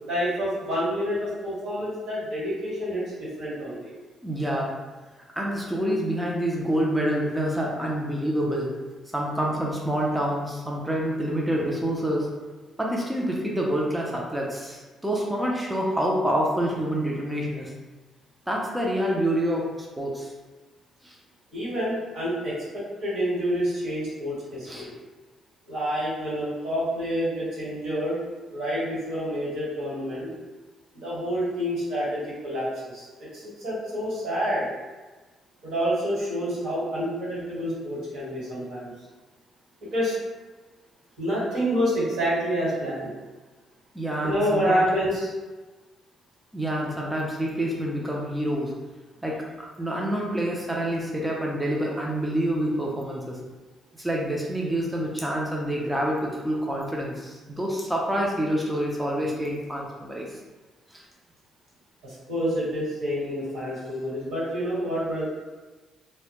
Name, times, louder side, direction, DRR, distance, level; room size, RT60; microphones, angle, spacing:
voice 1, 0.1-3.9 21.5-24.9 25.7-28.2 28.5-30.3 30.9-33.1 33.3-34.7 35.6-38.9 39.9-40.2 41.2-43.1 44.2-45.3 62.0-65.2, equal, 80° right, -9 dB, 1.3 m, -28 dB
voice 2, 4.2-4.7 5.3-8.7 9.1-12.3 12.8-17.7 18.5-20.3 21.0-21.2 24.7-24.9 43.9-44.9 46.5-48.7 49.2-49.4 49.8-53.4 54.0-60.4 60.9-61.0, equal, 5° right, -3 dB, 0.4 m, -27 dB
2.1 x 2.0 x 2.9 m, 1.2 s
cardioid pair, 90°, 0 cm